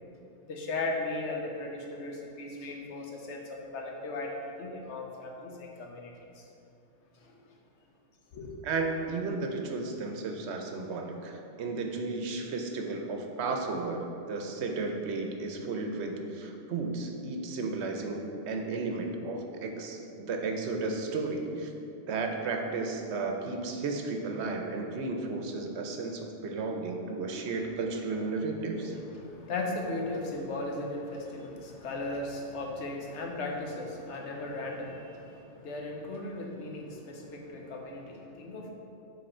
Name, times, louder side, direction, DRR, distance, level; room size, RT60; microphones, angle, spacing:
voice 1, 0.4-6.5 7.1-7.3 8.3-8.5 27.5-27.7 28.8-38.7, left 2 dB, 85° left, 1 dB, 1.1 m, -37 dB
voice 2, 8.6-21.7 22.1-29.0, right 3 dB, 75° right, 3 dB, 0.9 m, -33 dB
6.6 x 3.6 x 4.3 m, 2.7 s
omnidirectional pair, 1.2 m